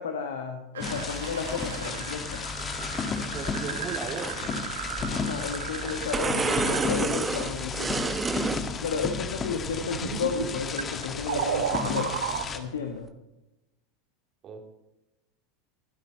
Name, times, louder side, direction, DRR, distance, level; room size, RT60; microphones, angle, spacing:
voice 1, 0.0-2.4 5.1-8.1 8.8-12.3 12.5-13.1, left 6 dB, 70° left, 4 dB, 1.5 m, -33 dB
sound 1, 0.7-7.3 9.4-12.5, right 8 dB, 70° right, 1.2 m, -35 dB
sound 2, 0.8-12.6, left 5 dB, 30° left, 1.6 m, -34 dB
voice 2, 3.3-4.6 14.4-14.6, right 5 dB, 35° right, 3 dB, 3.1 m, -37 dB
sound 3, 4.2-5.1 5.5-5.6 5.8-8.7 9.3-9.7 10.1-10.4 10.8-10.9, right 4 dB, 20° right, 1.2 m, -29 dB
24.5 x 10.0 x 4.3 m, 0.93 s
figure-of-eight pair, 80°, 0 cm